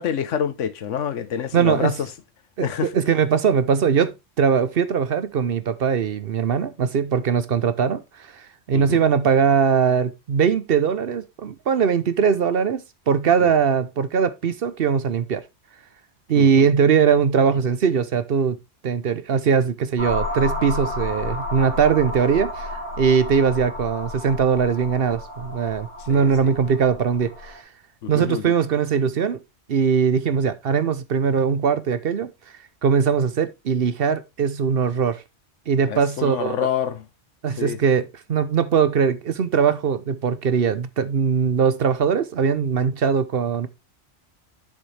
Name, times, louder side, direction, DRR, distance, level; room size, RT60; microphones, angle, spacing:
voice 1, 0.0-2.1 2.6-2.9 8.7-9.0 13.4-13.5 16.3-16.7 26.1-26.5 28.0-28.5 35.9-37.1 37.6-37.8, left 9 dB, 90° left, 1.2 m, -27 dB
voice 2, 1.5-2.0 2.6-2.7 2.9-15.4 16.3-18.6 18.8-27.6 28.1-29.4 29.7-32.3 32.8-35.2 35.7-36.6 37.4-43.7, right 6 dB, 55° right, 0.9 m, -21 dB
sound 1, 20.0-27.6, left 2 dB, 75° right, 3.4 m, -32 dB
7.7 x 7.2 x 3.2 m
omnidirectional pair, 1.2 m